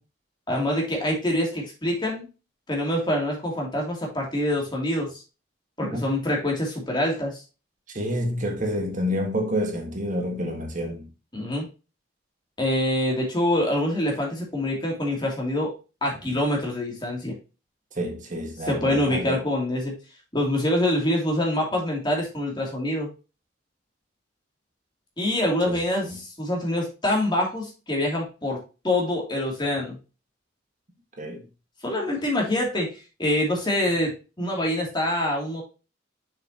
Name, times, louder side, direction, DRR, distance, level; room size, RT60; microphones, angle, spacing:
voice 1, 0.5-2.3 2.7-5.2 5.8-7.4 11.3-11.7 12.6-15.7 16.0-17.4 18.6-20.0 20.3-23.1 25.2-28.6 28.8-30.0 31.8-35.6, left 1 dB, 25° left, 2.9 m, -25 dB
voice 2, 7.9-11.1 17.9-19.4 26.0-26.2 31.2-31.5, equal, 40° right, 1.6 m, -28 dB
7.0 x 6.7 x 2.9 m
head